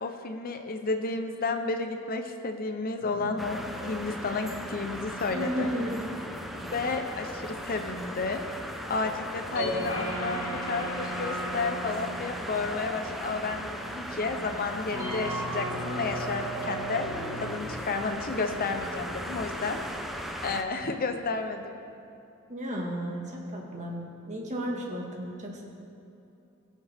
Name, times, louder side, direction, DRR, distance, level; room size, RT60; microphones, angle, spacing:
voice 1, 0.0-5.7 6.7-8.4 8.9-17.1 17.4-19.8 20.4-21.8, left 3 dB, 45° left, 6 dB, 0.7 m, -32 dB
sound 1, 3.0-17.6, equal, 70° left, 2.0 m, -38 dB
sound 2, 3.4-20.6, equal, ahead, 0.7 m, -38 dB
voice 2, 5.3-6.0 22.5-24.0 24.3-25.6, equal, 35° right, -1 dB, 1.8 m, -33 dB
20.0 x 7.3 x 3.5 m, 2.7 s
head